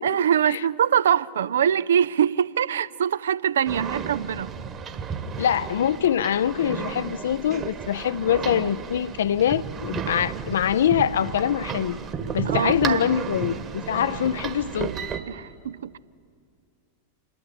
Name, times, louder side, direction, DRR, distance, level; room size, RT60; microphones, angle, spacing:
voice 1, 0.0-4.5 12.4-13.1 15.3-16.0, right 9 dB, 65° right, 0.4 m, -23 dB
sound 1, 3.7-15.2, right 6 dB, 30° right, 1.5 m, -33 dB
voice 2, 5.4-12.0 12.3-14.9, left 9 dB, 60° left, 0.4 m, -24 dB
27.5 x 12.0 x 8.9 m
figure-of-eight pair, 90°, 0 cm